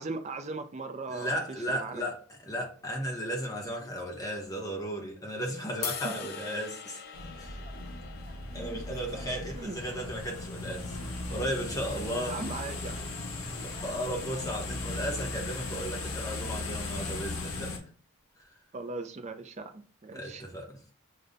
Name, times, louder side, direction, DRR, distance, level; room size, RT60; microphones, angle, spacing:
voice 1, 0.0-1.4 1.7-2.0 6.0-6.1 9.6-9.8 12.0-13.2 18.7-20.4, right 3 dB, 30° right, 0.4 m, -39 dB
voice 2, 1.1-7.0 7.4-7.6 8.5-11.0 11.3-12.4 13.6-17.8 20.1-20.9, equal, 15° left, 0.8 m, -35 dB
sound 1, 5.8-12.1, left 7 dB, 50° left, 0.4 m, -44 dB
sound 2, 7.1-17.8, left 2 dB, 85° left, 0.9 m, -37 dB
6.4 x 2.2 x 2.5 m
head